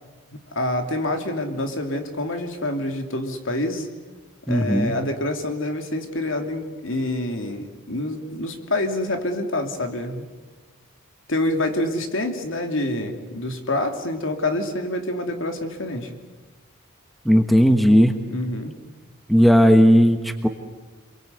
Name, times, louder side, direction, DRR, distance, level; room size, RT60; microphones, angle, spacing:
voice 1, 0.3-3.9 4.5-10.2 11.3-16.1 18.3-18.7, left 1 dB, 65° left, 5 dB, 2.9 m, -27 dB
voice 2, 4.5-5.0 17.2-18.2 19.3-20.5, equal, ahead, 6 dB, 1.2 m, -16 dB
27.5 x 23.0 x 8.2 m, 1.3 s
head